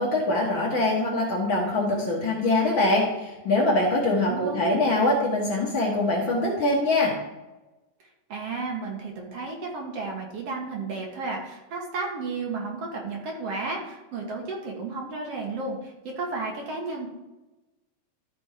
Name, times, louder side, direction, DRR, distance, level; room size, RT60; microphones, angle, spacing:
voice 1, 0.0-7.2, left 2 dB, 50° left, -2 dB, 1.8 m, -23 dB
voice 2, 4.2-4.9 8.3-17.1, right 3 dB, 60° right, -1 dB, 2.3 m, -33 dB
13.0 x 4.3 x 4.9 m, 1.1 s
omnidirectional pair, 3.3 m